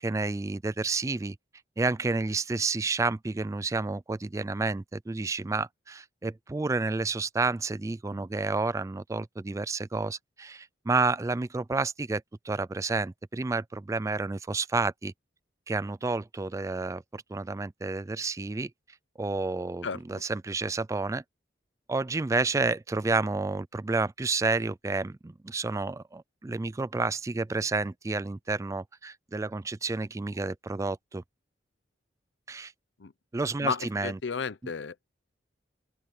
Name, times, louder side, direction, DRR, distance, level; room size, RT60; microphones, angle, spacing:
voice 1, 0.0-1.4 1.8-15.1 15.7-18.7 19.2-21.2 21.9-31.2 32.5-32.7 33.3-34.2, right 3 dB, 15° right, 0.3 m, -30 dB
voice 2, 19.8-20.2 33.0-33.1 33.6-34.9, left 5 dB, 75° left, 0.7 m, -33 dB
open air
head